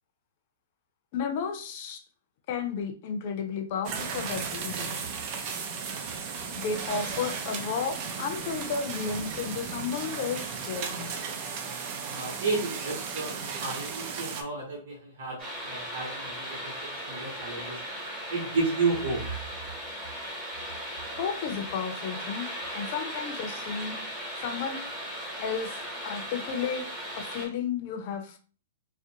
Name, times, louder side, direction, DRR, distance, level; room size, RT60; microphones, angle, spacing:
voice 1, 1.1-2.0 2.5-4.9 6.5-11.1 21.2-22.5 22.7-24.0 24.4-24.8 25.4-25.8 26.0-26.8 27.2-28.4, left 6 dB, 50° left, 6 dB, 0.5 m, -33 dB
sound 1, 3.8-14.4, right 6 dB, 40° right, 0.5 m, -35 dB
voice 2, 12.1-17.8 18.3-19.4, right 3 dB, 60° right, -4 dB, 1.1 m, -32 dB
sound 2, 15.4-27.5, equal, 15° right, 1.1 m, -37 dB
2.4 x 2.1 x 2.7 m, 0.39 s
hypercardioid pair, 125°, 0 cm